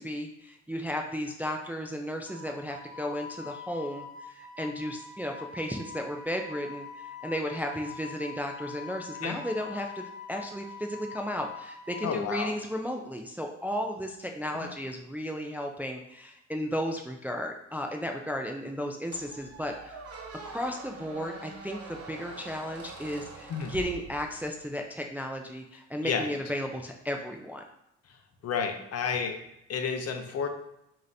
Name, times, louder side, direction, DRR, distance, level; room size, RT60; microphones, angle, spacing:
voice 1, 0.0-20.0 20.4-27.6, equal, 5° right, 2 dB, 0.3 m, -34 dB
Wind instrument woodwind instrument, 2.2-12.1, left 5 dB, 30° left, 1.1 m, -44 dB
voice 2, 12.0-12.5 14.6-14.7 23.5-23.8 26.0-26.3 28.4-29.4 29.7-30.5, left 6 dB, 55° left, 5 dB, 0.6 m, -31 dB
Squeak, 19.1-24.6, right 3 dB, 50° right, 0.8 m, -44 dB
4.9 x 2.8 x 2.6 m, 0.83 s
cardioid pair, 90°, 30 cm